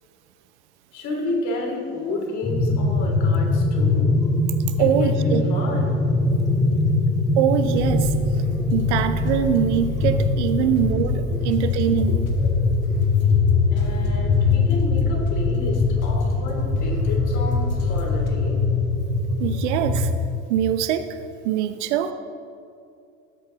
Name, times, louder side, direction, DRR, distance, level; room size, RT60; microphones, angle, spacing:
voice 1, 0.9-4.1 4.8-6.0 11.3-11.4 12.1-12.2 13.7-18.6, left 2 dB, 45° left, 0 dB, 3.1 m, -31 dB
sound 1, 2.4-20.1, left 3 dB, 15° left, 2.1 m, -22 dB
voice 2, 4.8-5.4 7.3-8.1 8.7-12.2 19.4-20.1 20.5-21.0 21.4-22.1, right 9 dB, 55° right, 10 dB, 0.9 m, -23 dB
sound 2, 7.5-18.3, left 1 dB, 80° left, 1.5 m, -34 dB
18.5 x 8.2 x 3.9 m, 2.5 s
figure-of-eight pair, 75°, 41 cm